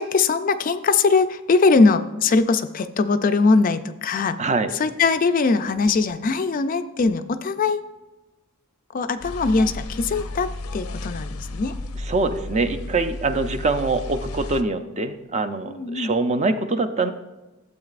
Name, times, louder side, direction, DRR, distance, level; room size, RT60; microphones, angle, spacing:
voice 1, 0.0-4.4 4.7-7.8 8.9-11.7 15.7-16.1, left 4 dB, 40° left, 10 dB, 0.3 m, -21 dB
voice 2, 4.4-4.7 12.0-17.1, right 3 dB, 30° right, 9 dB, 0.5 m, -24 dB
sound 1, 9.2-14.6, left 2 dB, 90° left, 0.6 m, -33 dB
12.5 x 7.9 x 2.5 m, 1.1 s
head